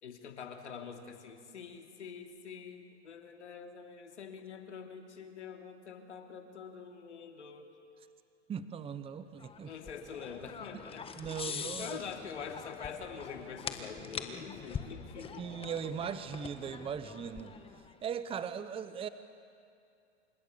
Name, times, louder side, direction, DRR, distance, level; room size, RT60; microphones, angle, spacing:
voice 1, 0.0-7.7 9.6-11.1 11.4-15.5, left 6 dB, 80° left, 4 dB, 2.9 m, -45 dB
voice 2, 8.5-9.7 11.2-12.0 15.3-17.5 18.0-19.1, right 7 dB, 15° right, 12 dB, 0.9 m, -39 dB
sound 1, 9.4-17.9, left 6 dB, 15° left, 1.5 m, -44 dB
28.5 x 26.5 x 7.1 m, 2.4 s
hypercardioid pair, 115°, 34 cm